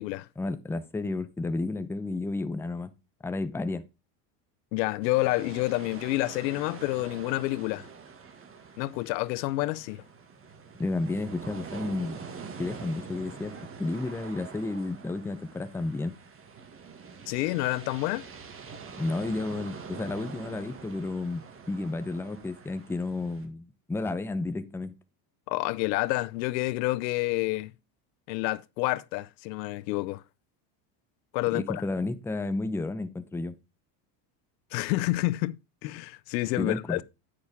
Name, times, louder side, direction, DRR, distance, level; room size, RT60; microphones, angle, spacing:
voice 1, 0.4-2.9 3.2-3.8 10.8-12.2 12.6-13.5 13.8-16.1 19.0-24.9 31.5-33.5 36.6-37.0, left 2 dB, 5° left, 0.6 m, -32 dB
voice 2, 4.7-7.9 8.8-10.0 17.3-18.2 25.5-27.7 28.3-30.2 31.3-31.8 34.7-35.6 35.8-37.0, left 20 dB, 90° left, 0.7 m, -28 dB
sound 1, 5.0-23.5, right 5 dB, 25° right, 1.8 m, -45 dB
9.7 x 6.7 x 3.5 m
supercardioid pair, 130°, 49 cm